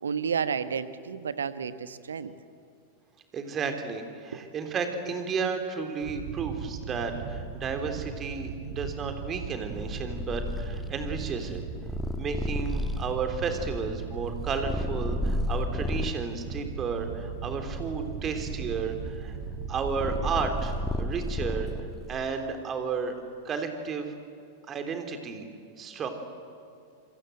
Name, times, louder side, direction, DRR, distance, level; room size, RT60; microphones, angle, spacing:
voice 1, 0.0-2.3 4.3-4.5, right 6 dB, 70° right, 13 dB, 1.3 m, -31 dB
voice 2, 3.3-11.6 12.2-19.4 19.7-21.7 22.1-23.1 23.4-24.1 24.7-25.4 25.8-26.1, right 5 dB, 25° right, 6 dB, 3.6 m, -32 dB
sound 1, 6.0-21.1, right 6 dB, 50° right, 3.3 m, -38 dB
Purr, 9.7-16.2 16.9-22.1, left 1 dB, 5° left, 1.6 m, -33 dB
27.0 x 24.5 x 8.0 m, 2.4 s
figure-of-eight pair, 90°, 0 cm